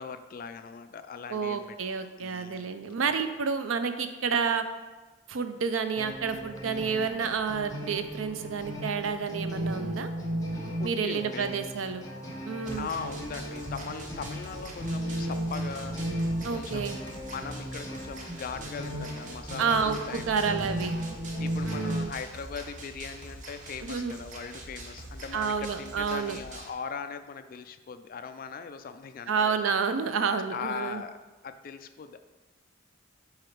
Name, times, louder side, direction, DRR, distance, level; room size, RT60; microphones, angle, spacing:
voice 1, 0.0-1.8 2.2-2.9 10.8-11.6 12.7-16.2 16.5-19.8 20.1-20.6 21.4-29.6 30.5-32.3, left 6 dB, 45° left, 9 dB, 0.3 m, -40 dB
voice 2, 1.3-4.6 5.3-10.1 10.8-12.0 12.4-12.9 16.4-17.0 19.6-21.0 21.6-22.1 23.8-24.1 25.3-26.4 29.3-31.0, right 5 dB, 85° right, 9 dB, 0.5 m, -29 dB
sound 1, 6.0-22.0, equal, 15° left, 1.1 m, -35 dB
sound 2, 12.7-26.7, right 1 dB, 40° right, 0.9 m, -44 dB
4.9 x 4.2 x 4.6 m, 1.2 s
head